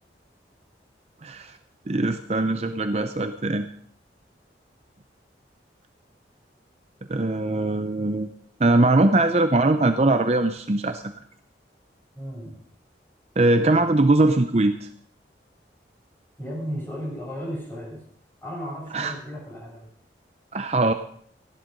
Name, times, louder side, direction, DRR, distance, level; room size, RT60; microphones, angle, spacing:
voice 1, 1.2-1.6 1.9-3.7 7.1-8.3 8.6-11.1 13.4-14.9 18.9-19.1 20.5-20.9, right 2 dB, 35° right, 8 dB, 0.6 m, -21 dB
voice 2, 12.1-12.5 16.4-18.0 18.4-19.9, equal, 15° left, -6 dB, 7.7 m, -34 dB
14.5 x 11.5 x 5.3 m, 0.62 s
head